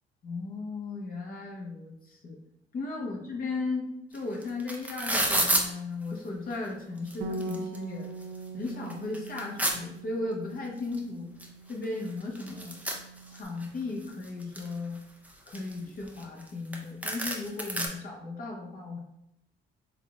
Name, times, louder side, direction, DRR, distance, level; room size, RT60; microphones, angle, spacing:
voice 1, 0.2-2.4 2.7-8.1 8.5-11.3 11.7-12.8 13.3-15.0 15.5-19.0, left 3 dB, 45° left, -2 dB, 1.0 m, -36 dB
sound 1, 4.1-4.2 4.4-5.6 6.5-6.6 7.0-7.8 8.2-8.3 8.7-9.8 10.9-11.0 11.4-11.5 11.7-13.7 14.1-14.7 15.2-16.5 16.7-16.8 17.0-17.9, right 1 dB, 5° right, 0.6 m, -30 dB
Bass guitar, 7.2-13.5, right 2 dB, 70° right, 0.5 m, -42 dB
3.6 x 3.6 x 2.3 m, 0.80 s
cardioid pair, 90°, 20 cm